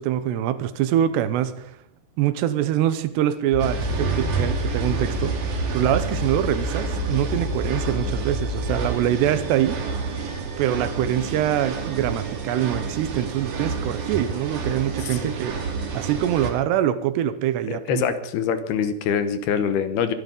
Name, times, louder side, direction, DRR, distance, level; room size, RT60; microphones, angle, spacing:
voice 1, 0.0-1.8 2.2-9.8 10.6-15.6 15.9-18.0, right 11 dB, 80° right, 13 dB, 2.9 m, -24 dB
sound 1, 3.5-8.9, left 3 dB, 35° left, 2.8 m, -29 dB
sound 2, 3.6-16.5, right 5 dB, 50° right, 3.8 m, -29 dB
voice 2, 17.7-20.1, left 7 dB, 70° left, 11 dB, 2.8 m, -24 dB
23.0 x 12.0 x 5.4 m, 0.71 s
omnidirectional pair, 5.1 m